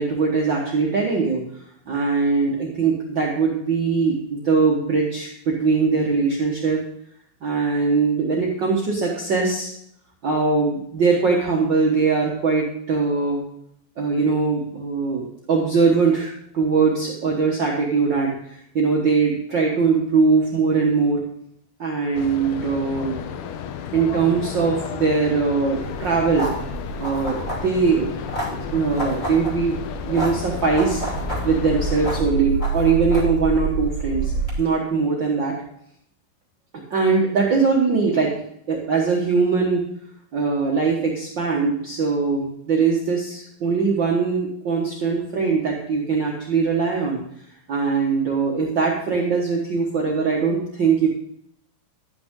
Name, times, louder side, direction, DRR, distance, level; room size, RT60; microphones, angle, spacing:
voice 1, 0.0-1.4 1.9-6.8 7.4-9.7 10.2-13.4 14.0-21.2 21.8-23.2 23.9-26.5 27.0-28.1 28.5-29.8 30.1-31.0 31.4-34.3 34.6-35.5 36.9-38.3 38.7-39.8 40.3-47.2 47.7-51.1, right 4 dB, 85° right, -2 dB, 1.0 m, -21 dB
sound 1, 22.1-32.2, left 8 dB, 75° left, 2.1 m, -33 dB
sound 2, 25.8-34.5, right 3 dB, 25° left, 2.5 m, -28 dB
12.5 x 9.0 x 3.7 m, 0.73 s
omnidirectional pair, 4.2 m